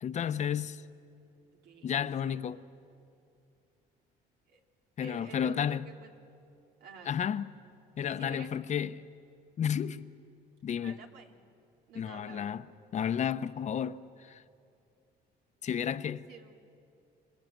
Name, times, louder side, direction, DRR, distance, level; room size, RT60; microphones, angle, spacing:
voice 1, 0.0-0.8 1.8-2.6 5.0-5.9 7.1-7.5 8.0-8.9 9.6-10.1 10.6-11.0 11.9-12.6 12.9-14.4 15.6-16.3, left 8 dB, 45° left, 0.8 m, -32 dB
voice 2, 1.5-1.9 2.2-2.5 4.5-4.6 5.0-6.1 6.8-7.2 8.2-8.6 10.8-11.4 11.9-12.6 16.3-16.6, right 6 dB, 85° right, 2.6 m, -50 dB
26.0 x 24.5 x 9.2 m
cardioid pair, 110°, 17 cm